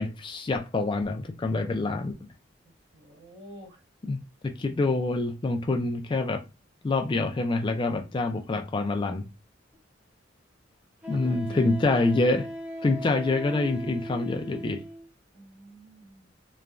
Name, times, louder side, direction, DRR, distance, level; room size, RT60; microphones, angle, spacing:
voice 1, 0.0-2.1 4.1-6.4 6.8-9.2 11.1-12.5 12.8-14.8, left 2 dB, 25° left, 0.3 m, -26 dB
voice 2, 2.9-3.8 11.1-11.8 15.3-16.3, right 1 dB, 65° right, 1.8 m, -47 dB
Wind instrument woodwind instrument, 9.7-9.8 11.0-15.1, equal, 5° right, 0.7 m, -39 dB
3.1 x 2.2 x 2.4 m
head